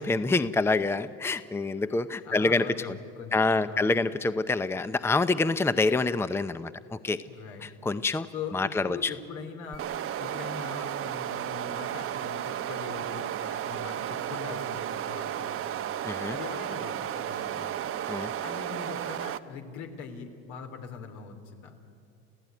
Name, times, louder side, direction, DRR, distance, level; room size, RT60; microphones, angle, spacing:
voice 1, 0.0-2.9 3.3-6.7 7.0-7.2 7.8-8.3 8.5-9.1 16.0-16.3 18.1-18.3, left 3 dB, 10° left, 13 dB, 0.7 m, -26 dB
voice 2, 2.2-4.0 7.2-7.9 8.3-9.9 10.2-15.9 16.3-17.7 18.4-21.7, left 6 dB, 75° left, 5 dB, 3.5 m, -41 dB
sound 1, 9.7-19.4, right 10 dB, 45° right, 0.9 m, -33 dB
29.5 x 15.5 x 9.4 m, 2.5 s
supercardioid pair, 100°, 31 cm